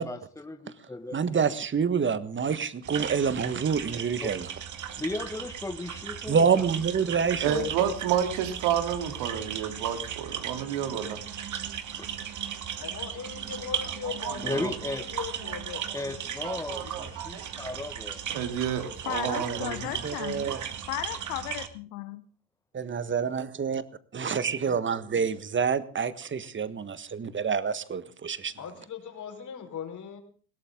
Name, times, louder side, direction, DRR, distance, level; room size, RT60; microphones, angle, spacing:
voice 1, 0.0-1.5 4.2-4.4 4.9-7.1 10.7-10.8 12.0-12.1 14.4-15.0 15.9-18.2 22.8-23.3, left 2 dB, 5° left, 1.6 m, -36 dB
voice 2, 1.1-4.5 6.3-7.9 19.3-19.6 20.0-20.6 22.7-23.8 24.1-28.5, right 6 dB, 25° right, 1.5 m, -27 dB
sound 1, 2.8-21.7, right 9 dB, 45° right, 2.2 m, -37 dB
voice 3, 7.4-11.2 14.2-14.7 16.4-17.7 18.3-20.6, right 8 dB, 65° right, 3.4 m, -31 dB
voice 4, 12.8-17.1 28.6-30.2, left 7 dB, 45° left, 4.8 m, -40 dB
voice 5, 19.0-20.5 20.9-22.2, left 15 dB, 75° left, 1.3 m, -35 dB
21.0 x 17.5 x 3.8 m
hypercardioid pair, 75°, 43 cm